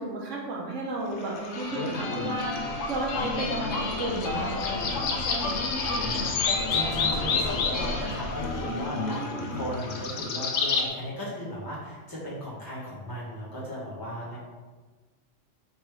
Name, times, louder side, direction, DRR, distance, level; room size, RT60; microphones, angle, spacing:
voice 1, 0.0-4.6 8.6-9.7, right 2 dB, 75° right, -2 dB, 1.3 m, -34 dB
sound 1, 1.2-10.9, left 3 dB, 80° left, 1.0 m, -29 dB
voice 2, 5.9-6.3 6.7-14.4, equal, 20° left, -8 dB, 1.3 m, -36 dB
3.4 x 3.3 x 4.6 m, 1.3 s
omnidirectional pair, 1.3 m